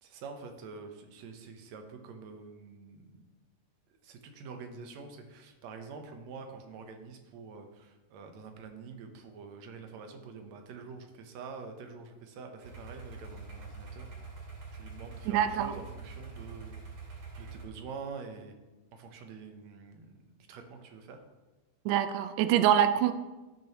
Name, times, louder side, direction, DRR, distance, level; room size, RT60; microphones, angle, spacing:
voice 1, 0.0-3.3 4.0-14.1 14.7-16.7 17.4-18.5 18.9-20.1 20.5-21.2, right 5 dB, 65° right, 5 dB, 2.0 m, -46 dB
sound 1, 12.6-17.6, right 4 dB, 45° right, 2.6 m, -45 dB
voice 2, 15.3-15.7 21.8-23.1, right 10 dB, 85° right, 10 dB, 1.5 m, -25 dB
16.0 x 6.2 x 3.0 m, 1.2 s
omnidirectional pair, 3.7 m